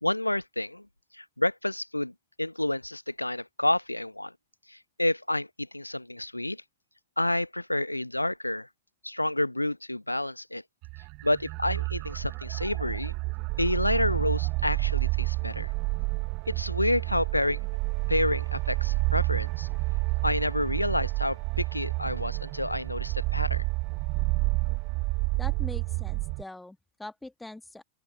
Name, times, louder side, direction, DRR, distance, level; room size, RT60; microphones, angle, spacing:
voice 1, 0.0-0.8 1.2-2.1 2.4-4.3 5.0-5.5 5.7-6.6 7.2-8.7 9.0-10.6 11.2-13.1 13.6-15.7 16.6-17.6 18.1-19.7 20.2-23.6, left 1 dB, 85° left, 1.0 m, -29 dB
sound 1, 10.8-26.4, right 26 dB, 40° right, 0.6 m, -29 dB
voice 2, 25.4-27.8, left 2 dB, 5° left, 1.7 m, -43 dB
open air
figure-of-eight pair, 90°, 0 cm